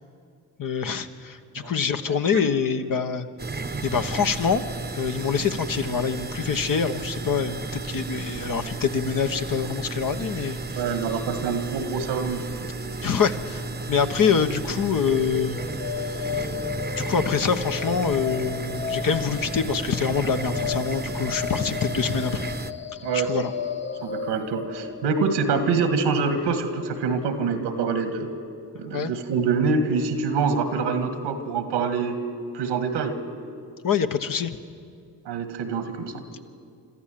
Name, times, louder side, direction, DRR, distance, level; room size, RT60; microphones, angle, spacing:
voice 1, 0.6-3.3 3.8-4.6 4.9-10.8 13.0-13.6 13.9-15.6 16.3-16.5 16.9-22.5 23.1-23.5 28.9-29.1 33.8-34.6, left 6 dB, 50° left, 7 dB, 1.3 m, -25 dB
voice 2, 2.1-2.4 10.8-12.4 23.0-23.3 24.0-28.3 28.7-32.2 32.5-33.2 35.2-36.2, right 5 dB, 80° right, 8 dB, 1.7 m, -25 dB
sound 1, 3.4-22.7, right 3 dB, 25° right, 0.9 m, -33 dB
sound 2, 15.0-29.0, left 7 dB, 25° left, 0.8 m, -35 dB
26.0 x 13.5 x 7.7 m, 2.4 s
hypercardioid pair, 45°, 42 cm